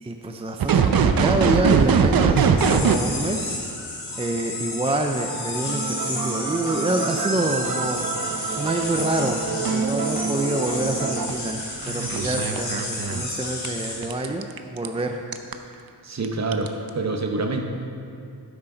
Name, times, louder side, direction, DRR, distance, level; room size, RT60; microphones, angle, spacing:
voice 1, 0.0-3.6 4.2-8.1 8.4-14.5 14.7-15.2 15.7-15.8, right 2 dB, 15° right, 4 dB, 0.4 m, -27 dB
sound 1, 0.6-2.9 5.1-13.2 13.6-14.9 15.3-15.5 16.2-16.3 16.5-16.9, right 6 dB, 60° right, 0.7 m, -23 dB
sound 2, 2.6-14.1, left 2 dB, 70° left, 2.9 m, -32 dB
voice 2, 16.0-17.6, right 3 dB, 40° right, 4 dB, 1.0 m, -26 dB
12.0 x 9.9 x 3.9 m, 2.5 s
wide cardioid pair, 145°, 41 cm